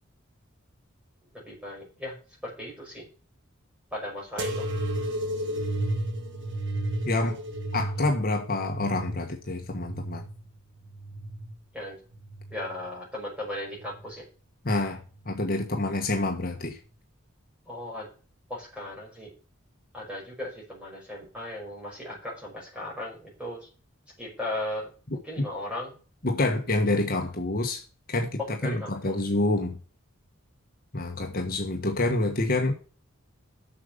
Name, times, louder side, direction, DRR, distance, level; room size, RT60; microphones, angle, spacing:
voice 1, 1.5-2.1 2.4-3.0 3.9-4.7 11.7-12.0 12.5-14.2 17.7-18.1 18.5-19.3 19.9-23.7 24.2-26.0 28.6-29.2, left 1 dB, 5° right, -3 dB, 5.6 m, -37 dB
sound 1, 4.4-11.6 12.1-12.9 13.7-14.2 15.2-15.3, right 1 dB, 55° right, 1.8 m, -33 dB
voice 2, 7.0-7.4 7.7-10.2 14.6-16.8 25.4-25.5 26.2-27.8 28.1-29.8 30.9-32.7, left 2 dB, 45° left, 3 dB, 1.4 m, -27 dB
7.7 x 6.5 x 6.7 m, 0.37 s
head